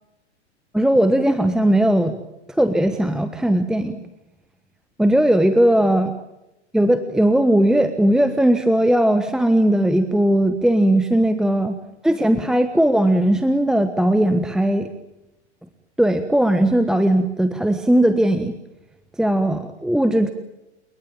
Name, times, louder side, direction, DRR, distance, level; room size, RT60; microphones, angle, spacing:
voice 1, 0.7-2.2 2.5-4.0 5.0-6.1 6.7-11.8 12.0-14.9 16.0-18.5 19.2-20.3, right 1 dB, ahead, 10 dB, 1.2 m, -18 dB
29.5 x 18.5 x 8.8 m, 0.94 s
figure-of-eight pair, 105°, 35 cm